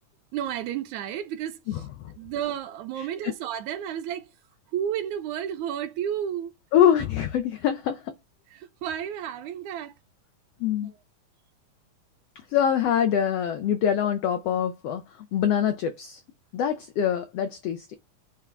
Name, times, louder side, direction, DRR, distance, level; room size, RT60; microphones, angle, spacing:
voice 1, 0.3-1.8 2.2-4.3 4.7-6.5 8.5-9.9 10.8-10.9, right 9 dB, 80° right, 2.1 m, -32 dB
voice 2, 3.0-3.3 6.7-8.1 10.6-10.9 12.5-15.0 15.3-16.2 16.5-17.9, left 9 dB, 80° left, 1.4 m, -24 dB
8.7 x 3.8 x 3.3 m
omnidirectional pair, 3.6 m